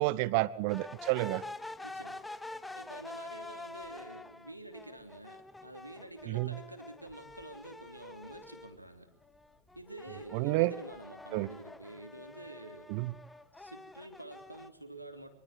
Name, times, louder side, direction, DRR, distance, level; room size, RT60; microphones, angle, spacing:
voice 1, 0.0-1.4 6.3-6.5 10.3-10.7 11.3-11.5 12.9-13.1, right 20 dB, 45° right, 18 dB, 1.3 m, -30 dB
sound 1, 0.7-8.8 9.2-14.7, left 2 dB, 5° left, 1.4 m, -47 dB
voice 2, 1.8-2.2 2.7-9.1 9.7-13.0 13.6-15.3, right 1 dB, 85° right, 6 dB, 3.4 m, -48 dB
25.5 x 24.5 x 8.0 m, 0.75 s
figure-of-eight pair, 90°, 0 cm